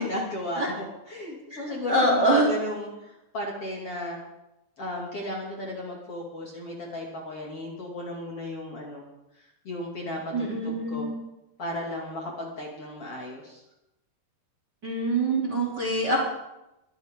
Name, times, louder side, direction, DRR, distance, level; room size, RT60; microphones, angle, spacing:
voice 1, 0.0-4.2 4.8-9.1 9.7-11.1 11.6-13.6, left 1 dB, 40° left, -2 dB, 3.4 m, -34 dB
voice 2, 1.9-2.5 10.3-11.2 14.8-16.2, right 1 dB, 25° right, -2 dB, 3.8 m, -24 dB
22.5 x 14.0 x 3.9 m, 0.91 s
omnidirectional pair, 4.4 m